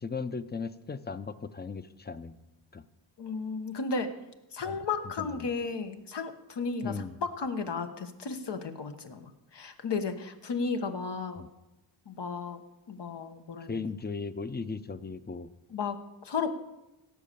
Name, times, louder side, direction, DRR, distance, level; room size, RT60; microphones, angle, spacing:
voice 1, 0.0-2.4 2.7-2.8 4.6-4.8 5.2-5.5 6.8-7.2 11.4-11.5 13.7-15.5, left 4 dB, 20° left, 13 dB, 0.7 m, -37 dB
voice 2, 3.2-4.1 4.5-11.4 12.1-12.6 12.9-13.8 15.7-16.5, left 4 dB, 60° left, 7 dB, 1.4 m, -34 dB
16.5 x 7.6 x 6.9 m, 0.97 s
cardioid pair, 80°, 46 cm